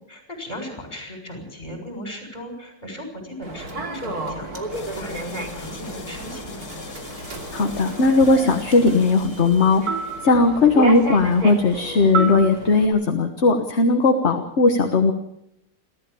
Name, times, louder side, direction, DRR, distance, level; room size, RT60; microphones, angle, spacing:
voice 1, 0.1-6.6, equal, 25° left, 3 dB, 7.2 m, -36 dB
Human voice / Subway metro underground, 3.4-12.9, right 3 dB, 55° right, 3.3 m, -31 dB
sound 1, 4.7-10.2, left 5 dB, 65° left, 2.4 m, -41 dB
voice 2, 7.5-9.8 10.2-15.1, left 3 dB, 40° left, 5 dB, 1.6 m, -18 dB
29.5 x 13.5 x 7.1 m, 0.82 s
omnidirectional pair, 2.0 m